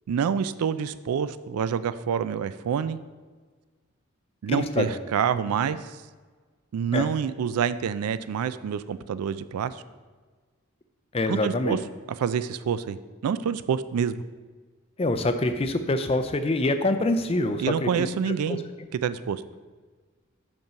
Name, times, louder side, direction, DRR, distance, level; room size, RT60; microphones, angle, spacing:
voice 1, 0.1-3.0 4.4-6.0 6.7-9.8 11.3-11.8 12.2-13.0 13.2-14.2 17.6-18.6 19.0-19.4, right 7 dB, 90° right, 14 dB, 0.3 m, -27 dB
voice 2, 4.5-5.0 6.9-7.0 11.1-11.8 15.0-18.6, left 2 dB, 25° left, 8 dB, 0.4 m, -25 dB
5.4 x 5.3 x 5.6 m, 1.4 s
head